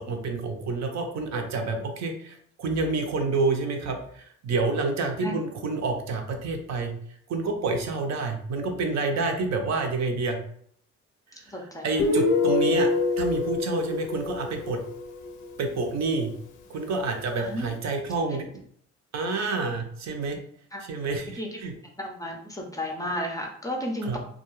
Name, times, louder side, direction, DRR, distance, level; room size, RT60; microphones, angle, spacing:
voice 1, 0.1-6.9 7.3-10.4 11.5-12.9 13.2-14.8 15.6-16.3 16.7-18.5 19.1-20.4 20.8-21.7 24.0-24.2, right 3 dB, 60° right, 4 dB, 0.6 m, -28 dB
voice 2, 11.5-12.1 17.4-17.7 20.7-20.8 21.4-21.5 22.0-24.2, equal, 10° left, 1 dB, 0.5 m, -33 dB
Guitar, 12.0-15.5, left 3 dB, 80° left, 0.5 m, -26 dB
2.3 x 2.2 x 3.0 m, 0.62 s
cardioid pair, 90°, 30 cm